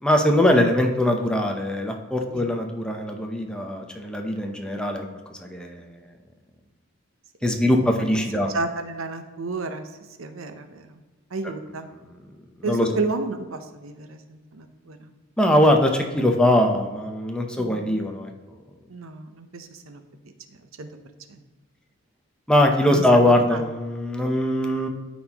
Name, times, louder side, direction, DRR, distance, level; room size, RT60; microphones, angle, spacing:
voice 1, 0.0-6.0 7.4-8.5 12.6-12.9 15.4-18.3 22.5-24.9, left 1 dB, 5° left, 2 dB, 0.7 m, -21 dB
voice 2, 8.5-9.9 10.2-11.0 11.3-11.9 12.6-15.1 17.6-17.9 18.9-20.0 20.8-20.9 21.3-21.4 22.9-23.6, right 3 dB, 90° right, 8 dB, 0.8 m, -32 dB
12.5 x 4.2 x 2.9 m, 1.3 s
head